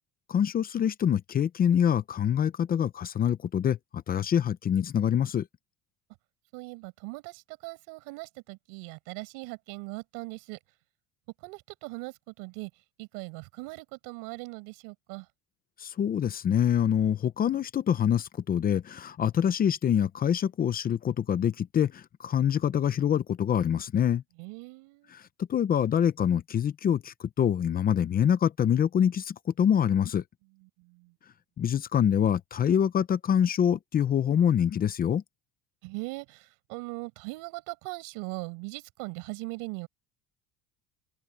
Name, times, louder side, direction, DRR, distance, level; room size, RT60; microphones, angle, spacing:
voice 1, 0.3-5.5 15.8-24.2 25.1-25.2 25.5-30.2 31.6-35.2, left 9 dB, 25° left, 0.7 m, -25 dB
voice 2, 6.5-10.6 11.4-12.7 13.0-15.3 24.4-25.1 30.6-31.1 35.8-39.9, right 27 dB, 85° right, 5.4 m, -40 dB
open air
cardioid pair, 150°, 32 cm